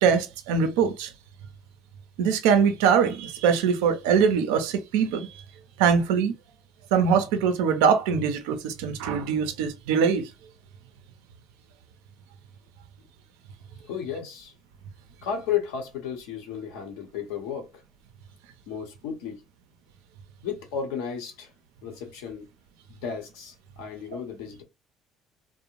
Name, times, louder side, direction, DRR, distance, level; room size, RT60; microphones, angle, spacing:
voice 1, 0.0-1.1 2.2-5.4 5.8-6.3 6.9-10.3, right 6 dB, 85° right, 0.4 m, -22 dB
voice 2, 13.8-14.5 15.2-17.8 18.7-19.4 20.4-21.5 21.8-22.5 22.9-24.6, left 8 dB, 85° left, 0.8 m, -33 dB
2.5 x 2.0 x 2.9 m
supercardioid pair, 70°, 0 cm